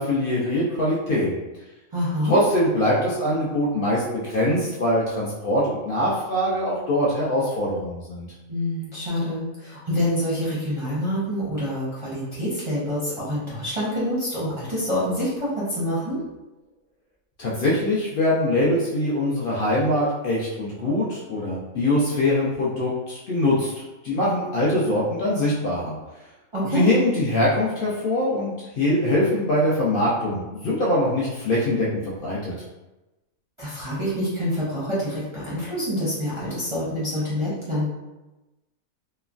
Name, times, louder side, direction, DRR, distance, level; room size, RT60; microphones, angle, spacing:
voice 1, 0.0-1.3 2.2-8.3 17.4-23.7 24.0-26.0 26.7-31.9 32.2-32.5, left 1 dB, 65° left, -6 dB, 0.5 m, -23 dB
voice 2, 1.9-2.4 8.5-16.2 26.5-26.9 33.6-37.9, equal, 35° right, -9 dB, 0.5 m, -26 dB
3.0 x 2.1 x 2.4 m, 1.1 s
omnidirectional pair, 1.4 m